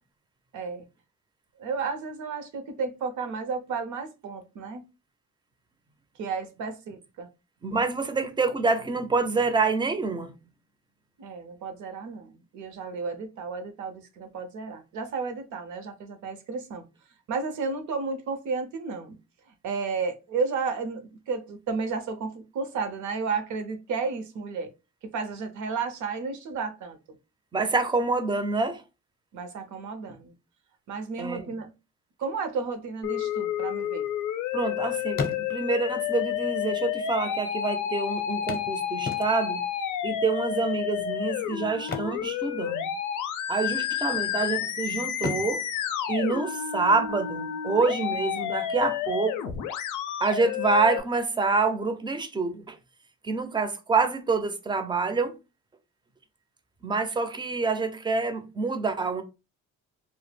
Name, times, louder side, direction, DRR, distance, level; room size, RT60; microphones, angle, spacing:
voice 1, 0.5-0.9 1.6-4.8 6.2-7.3 11.2-16.8 17.3-19.2 19.6-24.7 25.1-27.0 29.3-30.3 30.9-31.7 32.2-34.1, right 4 dB, 70° right, 0.6 m, -32 dB
voice 2, 7.6-10.3 27.5-28.8 31.2-31.5 34.5-39.6 40.0-42.9 43.5-45.6 46.1-49.6 50.2-52.8 53.2-55.4 56.8-59.2, right 4 dB, 15° right, 0.4 m, -27 dB
Musical instrument, 33.0-51.0, left 9 dB, 80° left, 0.5 m, -30 dB
sound 1, 33.5-34.7 35.0-35.9 36.8-36.9 37.1-37.2 38.5-39.7 41.7-43.0 43.3-43.6 44.1-44.7 45.1-46.9 48.9-49.0 49.4-49.5, left 3 dB, 30° left, 0.6 m, -36 dB
2.1 x 2.0 x 3.2 m
cardioid pair, 90°, 30 cm